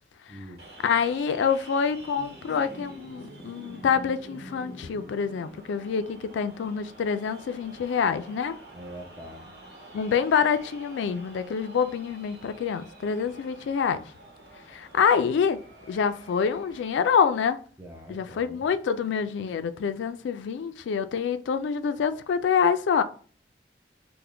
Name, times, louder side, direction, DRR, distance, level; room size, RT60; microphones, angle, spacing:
voice 1, 0.3-0.6 8.7-9.5 17.8-18.7, right 1 dB, 15° right, 0.6 m, -43 dB
sound 1, 0.6-17.1, right 1 dB, 65° right, 1.0 m, -47 dB
voice 2, 0.8-8.5 9.9-14.0 14.7-15.6 15.9-17.6 18.1-23.0, left 6 dB, 85° left, 0.3 m, -26 dB
3.3 x 2.1 x 3.6 m
head